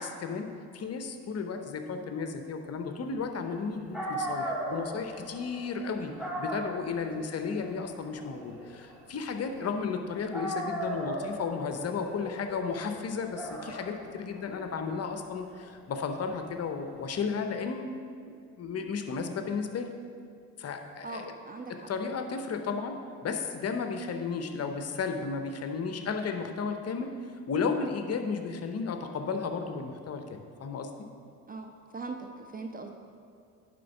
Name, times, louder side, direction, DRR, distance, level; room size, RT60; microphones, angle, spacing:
voice 1, 0.0-6.1 6.4-17.9 18.3-19.9 20.6-21.3 21.9-27.1 27.5-30.9, left 5 dB, 35° left, 6 dB, 0.8 m, -34 dB
Dog, 3.6-3.7 3.9-10.0 10.3-17.1, right 1 dB, ahead, 1.6 m, -38 dB
voice 2, 21.0-21.9 31.5-32.9, right 3 dB, 20° right, 4 dB, 0.5 m, -41 dB
10.0 x 3.8 x 5.9 m, 2.3 s
figure-of-eight pair, 55°, 46 cm